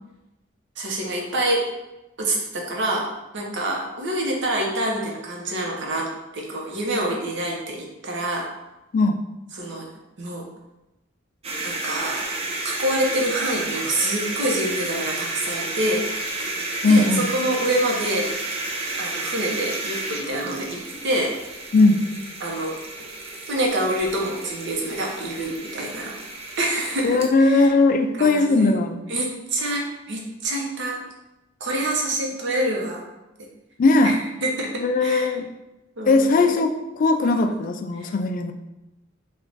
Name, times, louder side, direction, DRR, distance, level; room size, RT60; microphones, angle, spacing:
voice 1, 0.8-1.7 2.2-6.1 6.3-8.5 9.5-9.9 10.2-10.5 11.6-12.2 12.6-16.0 16.8-18.3 19.0-21.3 22.4-22.8 23.5-26.1 26.6-27.7 28.2-28.8 29.1-31.0 31.6-33.1 34.0-34.1 34.4-35.3 36.0-36.6 37.2-37.6 38.0-38.1, right 1 dB, 65° right, -1 dB, 0.8 m, -26 dB
sound 1, 11.4-27.3, right 2 dB, 30° right, 0.5 m, -31 dB
voice 2, 16.8-17.2 21.7-22.0 27.0-29.0 33.8-34.2 34.8-35.5 36.1-38.5, left 3 dB, 45° left, 7 dB, 0.3 m, -18 dB
3.3 x 2.3 x 3.8 m, 0.98 s
head